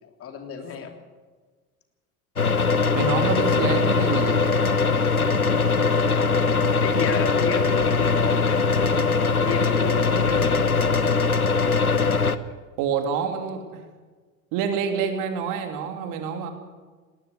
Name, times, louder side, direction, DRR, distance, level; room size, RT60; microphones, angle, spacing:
voice 1, 0.0-0.9 6.8-8.6 9.4-10.7, left 5 dB, 30° left, 5 dB, 3.3 m, -32 dB
sound 1, 2.4-12.4, left 4 dB, 90° left, 0.9 m, -21 dB
voice 2, 2.9-4.4 12.8-13.8 14.5-16.5, right 7 dB, 45° right, 6 dB, 3.2 m, -27 dB
20.0 x 18.5 x 8.3 m, 1.4 s
figure-of-eight pair, 75°, 42 cm